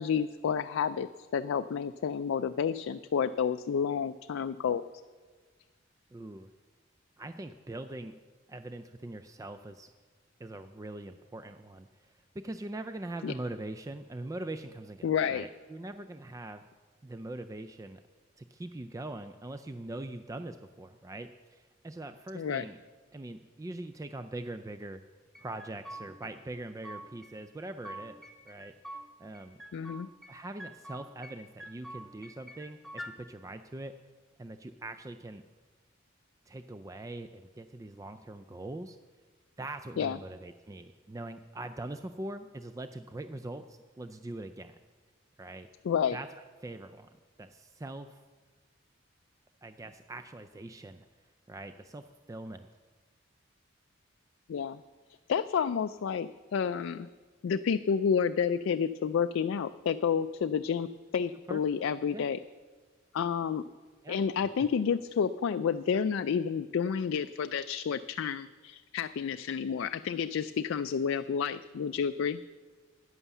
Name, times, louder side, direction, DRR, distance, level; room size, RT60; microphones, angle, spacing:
voice 1, 0.0-4.8 13.2-13.3 15.0-15.5 22.3-22.6 29.7-30.1 40.0-40.2 45.8-46.2 54.5-54.8 55.3-57.1 57.4-62.4 63.1-63.6 64.1-72.4, left 7 dB, 75° left, 10 dB, 0.3 m, -30 dB
voice 2, 6.1-6.5 7.2-8.2 8.5-9.9 10.4-16.6 17.0-18.0 18.4-22.8 23.1-25.0 25.4-28.7 29.2-29.6 30.3-33.9 34.4-35.4 36.5-39.0 39.6-44.8 45.4-45.7 46.1-46.3 46.6-47.1 47.4-48.2 49.6-51.1 51.5-52.7 61.5-61.6 62.1-62.2 64.0-64.2, right 2 dB, 15° right, 10 dB, 0.3 m, -42 dB
sound 1, 25.3-26.3 26.6-27.3 27.6-29.0 29.3-30.3 30.6-31.3 31.6-33.1, right 1 dB, ahead, 0.9 m, -46 dB
11.0 x 9.6 x 7.1 m, 1.4 s
head